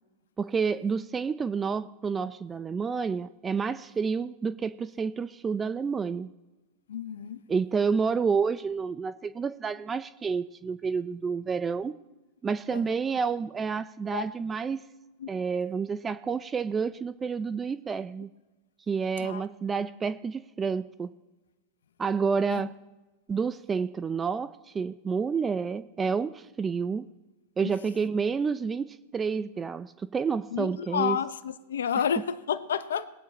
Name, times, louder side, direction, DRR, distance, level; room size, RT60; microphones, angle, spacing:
voice 1, 0.4-6.3 7.5-12.0 12.4-14.8 15.3-18.3 18.9-21.1 22.0-22.7 23.3-27.1 27.6-31.2, right 5 dB, 20° right, 15 dB, 0.4 m, -29 dB
voice 2, 6.9-7.4 12.7-13.0 14.1-14.2 15.2-15.3 19.2-19.4 22.5-22.6 30.5-33.1, left 8 dB, 85° left, 13 dB, 0.6 m, -30 dB
19.5 x 8.2 x 4.1 m, 1.1 s
hypercardioid pair, 105°, 0 cm